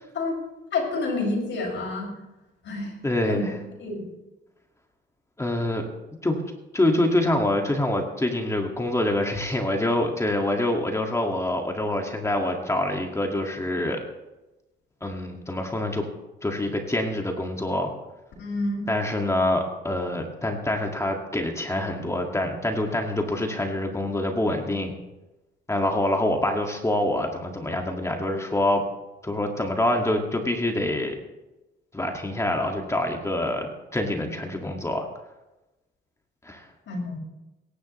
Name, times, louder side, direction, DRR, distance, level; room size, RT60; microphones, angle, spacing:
voice 1, 0.7-2.1 2.6-2.9 3.3-3.4 3.8-4.1 18.4-18.9 36.9-37.2, left 3 dB, 65° left, 0 dB, 6.1 m, -28 dB
voice 2, 3.0-3.5 5.4-5.8 6.2-6.4 6.7-14.0 15.0-16.1 16.4-17.9 18.9-24.9 25.7-28.8 29.2-31.2 31.9-35.1 36.4-36.7, left 1 dB, 15° left, 2 dB, 2.0 m, -26 dB
22.5 x 11.5 x 3.2 m, 1.0 s
cardioid pair, 90°, 20 cm